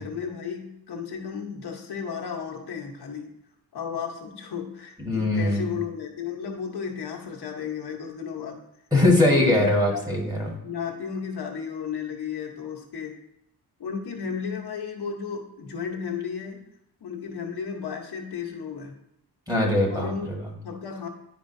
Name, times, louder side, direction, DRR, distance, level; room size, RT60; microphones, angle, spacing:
voice 1, 0.0-3.3 3.7-8.6 9.3-10.0 10.6-13.1 13.8-16.6 17.0-18.9 19.9-21.1, left 6 dB, 70° left, 1 dB, 1.0 m, -34 dB
voice 2, 5.0-5.6 8.9-10.5 19.5-20.3, left 1 dB, 10° right, -2 dB, 1.5 m, -21 dB
10.5 x 5.0 x 2.6 m, 0.78 s
wide cardioid pair, 155°, 40 cm